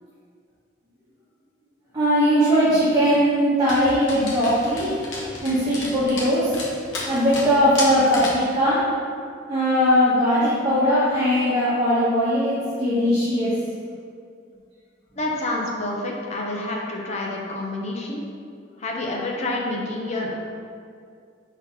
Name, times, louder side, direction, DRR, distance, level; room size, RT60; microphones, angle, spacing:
voice 1, 1.9-4.9 5.4-6.5 7.0-8.8 9.5-13.5, equal, 20° right, -12 dB, 1.4 m, -20 dB
Dog, 3.7-8.5, left 2 dB, 85° left, 1.2 m, -33 dB
voice 2, 15.2-18.2 18.8-20.4, left 2 dB, 35° left, -2 dB, 0.8 m, -28 dB
5.8 x 4.1 x 4.1 m, 2.3 s
head